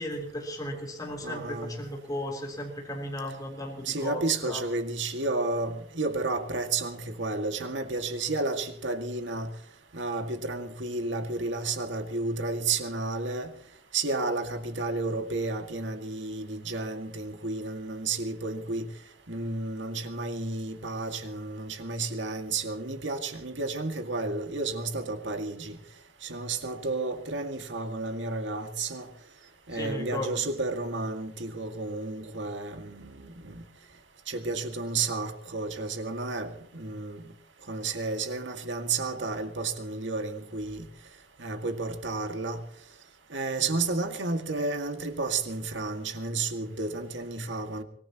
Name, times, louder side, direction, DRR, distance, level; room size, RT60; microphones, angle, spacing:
voice 1, 0.0-4.6 29.7-30.4, left 1 dB, 20° left, 3.7 m, -35 dB
voice 2, 1.2-1.8 3.8-9.5 9.9-13.5 13.9-18.9 19.3-25.8 26.2-29.1 29.7-33.6 34.3-37.2 37.7-40.8 41.4-42.6 43.3-47.8, right 3 dB, 80° right, 2.1 m, -32 dB
24.5 x 18.5 x 3.0 m
head